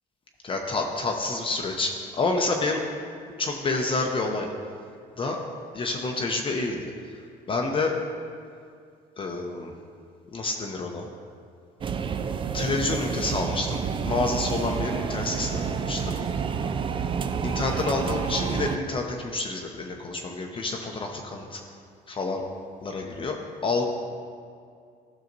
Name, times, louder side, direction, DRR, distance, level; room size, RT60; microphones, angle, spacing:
voice 1, 0.4-2.8 3.4-4.5 5.2-5.4 5.7-7.2 7.5-8.0 9.2-9.7 10.3-11.1 12.5-16.2 17.4-21.6 22.1-22.4 22.8-23.8, left 3 dB, 30° left, 1 dB, 0.7 m, -28 dB
sound 1, 11.8-18.8, right 6 dB, 30° right, 0.4 m, -29 dB
12.0 x 6.4 x 2.6 m, 2.3 s
cardioid pair, 110°, 17 cm